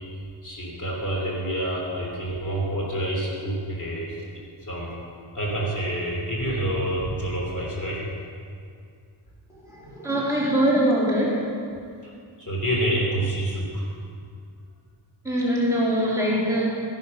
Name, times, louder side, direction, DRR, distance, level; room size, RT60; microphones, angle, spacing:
voice 1, 0.4-4.2 4.6-4.9 5.3-8.0 12.0-12.1 12.4-13.8, right 1 dB, 40° left, -3 dB, 3.3 m, -27 dB
voice 2, 9.5-11.4 15.2-16.6, equal, 5° right, -7 dB, 2.6 m, -23 dB
13.0 x 11.0 x 5.4 m, 2.3 s
wide cardioid pair, 150°, 47 cm